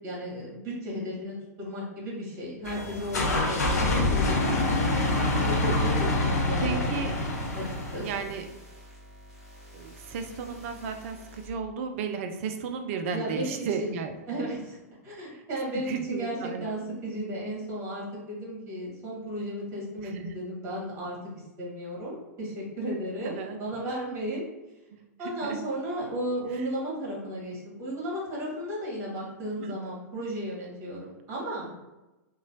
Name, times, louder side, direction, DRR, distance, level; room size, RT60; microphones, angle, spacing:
voice 1, 0.0-3.8 4.1-4.6 5.0-7.0 7.5-8.3 13.1-14.0 14.3-14.8 15.0-21.2 21.6-24.5 25.2-31.7, equal, 30° right, -5 dB, 1.4 m, -34 dB
sound 1, 2.6-8.2, left 2 dB, 75° left, 0.6 m, -26 dB
sound 2, 2.6-11.5, equal, 5° right, 1.3 m, -49 dB
voice 2, 6.6-7.1 8.0-8.5 9.7-14.1 15.9-16.8 20.0-20.3 23.2-23.6 24.9-25.7 26.5-26.7 29.6-29.8, right 6 dB, 50° right, 6 dB, 0.4 m, -34 dB
2.9 x 2.2 x 2.6 m, 1.0 s
figure-of-eight pair, 105°, 9 cm